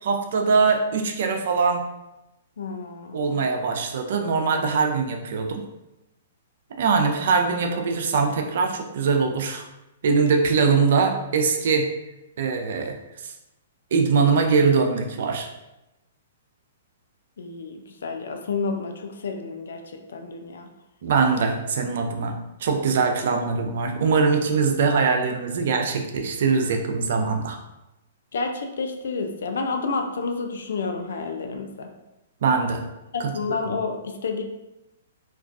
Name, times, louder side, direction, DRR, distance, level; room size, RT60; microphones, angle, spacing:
voice 1, 0.0-1.8 3.1-5.7 6.8-9.7 10.0-11.9 12.4-13.3 13.9-15.5 21.0-27.6 32.4-32.8 33.2-33.6, right 5 dB, 65° right, 4 dB, 0.4 m, -22 dB
voice 2, 2.6-3.4 17.4-20.7 28.3-31.9 33.1-34.4, left 4 dB, 75° left, 4 dB, 0.3 m, -30 dB
2.3 x 2.2 x 2.4 m, 0.95 s
hypercardioid pair, 130°, 0 cm